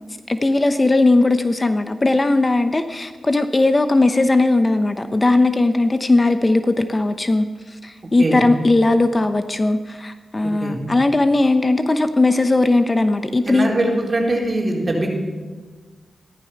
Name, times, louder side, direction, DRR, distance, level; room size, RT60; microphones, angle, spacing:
voice 1, 0.3-7.5 7.8-13.7, left 2 dB, 30° left, 9 dB, 0.9 m, -18 dB
voice 2, 13.4-15.1, right 1 dB, 40° right, -1 dB, 4.2 m, -21 dB
15.0 x 12.5 x 5.9 m, 1.4 s
cardioid pair, 60°, 0 cm